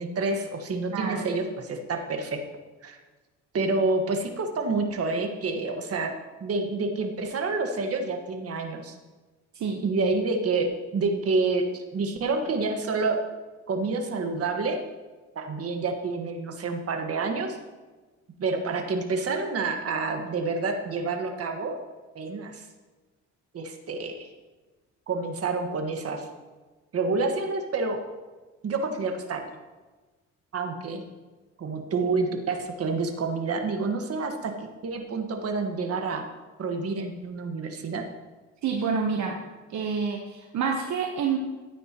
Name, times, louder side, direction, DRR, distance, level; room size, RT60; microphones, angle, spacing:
voice 1, 0.0-2.4 2.8-3.0 3.5-6.1 6.4-9.0 9.8-13.2 13.7-14.8 15.3-17.6 18.4-21.8 22.1-22.7 23.5-24.3 25.1-26.3 26.9-28.0 28.6-29.4 30.5-31.0 31.6-36.3 36.6-38.0, right 3 dB, 50° right, 4 dB, 1.6 m, -28 dB
voice 2, 0.9-1.3 9.5-9.8 38.6-39.4 39.7-41.4, right 6 dB, 65° right, 1 dB, 1.1 m, -28 dB
13.5 x 9.3 x 3.0 m, 1.2 s
cardioid pair, 90°, 30 cm